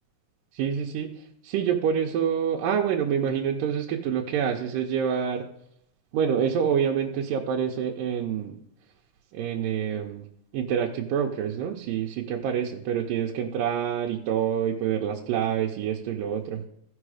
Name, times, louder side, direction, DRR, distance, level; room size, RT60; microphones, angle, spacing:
voice 1, 0.5-5.5 6.1-8.6 9.3-10.3 10.5-16.6, right 8 dB, 75° right, -1 dB, 2.4 m, -27 dB
15.5 x 5.7 x 4.9 m, 0.76 s
omnidirectional pair, 4.0 m